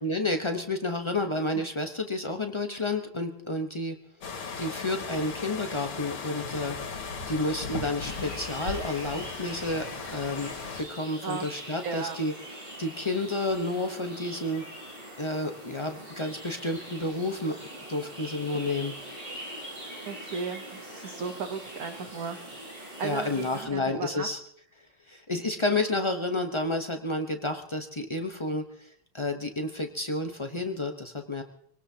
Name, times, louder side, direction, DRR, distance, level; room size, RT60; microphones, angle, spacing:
voice 1, 0.0-3.9 4.6-7.0 7.3-10.5 10.8-12.3 12.8-14.6 15.2-17.6 17.9-18.9 23.0-24.4 25.1-31.4, left 2 dB, 50° left, 4 dB, 0.3 m, -30 dB
sound 1, 4.2-10.8, left 4 dB, 85° left, 2.8 m, -37 dB
sound 2, 8.0-23.7, right 1 dB, 15° right, 6.3 m, -43 dB
voice 2, 11.8-12.2 20.0-22.4 23.0-24.3, right 5 dB, 55° right, 7 dB, 1.2 m, -35 dB
25.0 x 18.5 x 2.8 m, 0.65 s
omnidirectional pair, 2.3 m